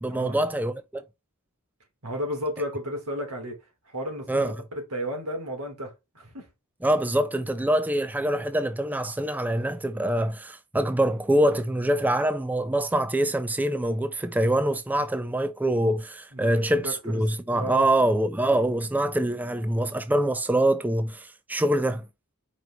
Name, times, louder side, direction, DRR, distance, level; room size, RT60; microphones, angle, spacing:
voice 1, 0.0-1.0 4.3-4.5 6.8-22.1, right 1 dB, 5° right, 0.3 m, -25 dB
voice 2, 2.0-3.6 3.9-4.5 4.9-6.5 16.3-17.2 17.5-17.9, equal, 85° right, 3.0 m, -33 dB
5.0 x 4.7 x 4.4 m
head